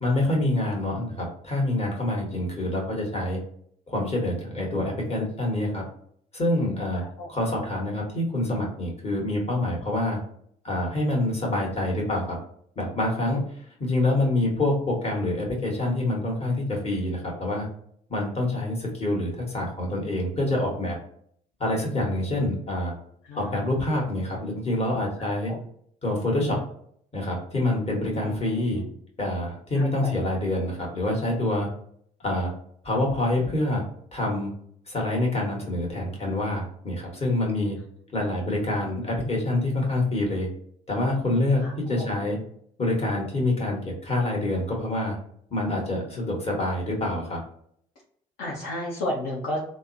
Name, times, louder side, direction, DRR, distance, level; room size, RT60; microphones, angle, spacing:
voice 1, 0.0-3.4 3.9-5.8 6.3-7.0 7.3-10.2 10.6-12.4 12.7-13.4 13.8-17.7 18.1-21.0 21.6-22.9 23.3-25.5 26.0-26.6 27.1-28.8 29.2-31.7 32.2-32.5 32.8-33.8 34.1-34.5 34.9-37.8 38.1-40.5 40.9-42.4 42.8-45.1 45.5-47.4, left 1 dB, 35° left, -1 dB, 1.5 m, -26 dB
voice 2, 6.9-7.3 13.8-14.2 23.2-23.8 25.2-25.6 28.1-28.8 29.7-30.1 38.1-38.6 41.6-42.2 48.4-49.6, left 1 dB, 70° left, -4 dB, 0.8 m, -35 dB
3.4 x 2.0 x 2.6 m, 0.65 s
hypercardioid pair, 55°, 19 cm